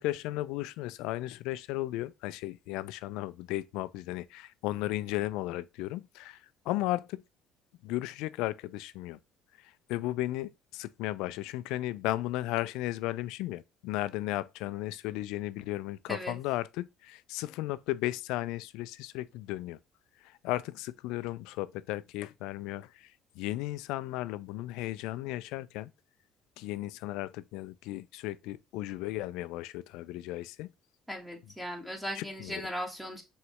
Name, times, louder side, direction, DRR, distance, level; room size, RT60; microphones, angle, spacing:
voice 1, 0.0-7.2 7.8-9.2 9.6-19.8 20.2-23.1 23.4-25.9 26.6-30.7 32.2-32.6, left 16 dB, 80° left, 0.3 m, -35 dB
voice 2, 31.1-33.2, equal, 5° right, 1.5 m, -37 dB
4.7 x 3.1 x 3.0 m
supercardioid pair, 75°, 0 cm